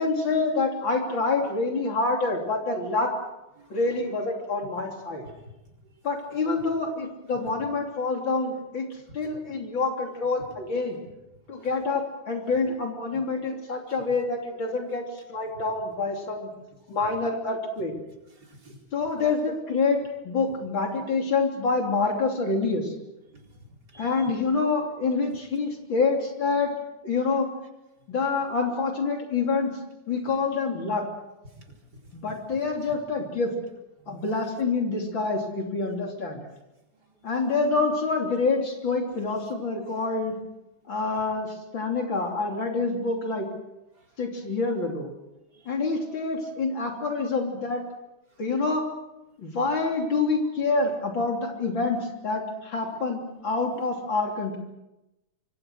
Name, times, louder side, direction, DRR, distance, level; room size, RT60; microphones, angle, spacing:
voice 1, 0.0-3.1 3.7-5.2 6.0-8.9 9.1-11.0 11.5-16.5 16.9-17.9 18.9-20.0 20.2-22.9 24.0-26.7 27.0-27.5 28.1-29.8 30.1-31.0 32.1-33.5 34.1-36.4 37.2-40.4 40.9-43.5 44.2-45.1 45.7-47.8 48.4-48.8 49.4-54.6, left 3 dB, 75° left, 2 dB, 4.0 m, -27 dB
voice 2, 18.3-18.8 23.3-24.3 31.5-31.9 34.0-34.2 44.0-44.1 45.5-45.7, right 2 dB, 55° right, 0 dB, 5.0 m, -52 dB
26.0 x 25.0 x 6.4 m, 0.96 s
omnidirectional pair, 2.1 m